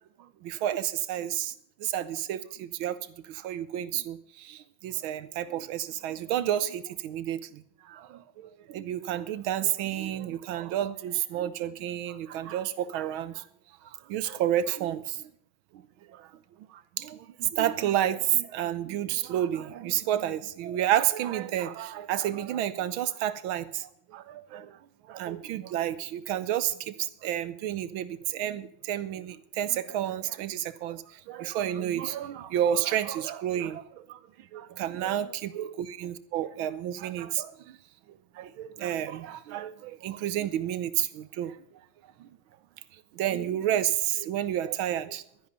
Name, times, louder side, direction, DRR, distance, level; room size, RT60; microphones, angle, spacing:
voice 1, 0.2-1.5 1.8-3.0 3.2-13.5 13.8-15.3 15.7-16.3 16.7-24.8 25.0-37.8 38.1-41.6 42.2-42.4 42.9-45.2, right 11 dB, 80° right, 1.6 m, -31 dB
12.5 x 10.5 x 6.7 m
omnidirectional pair, 2.2 m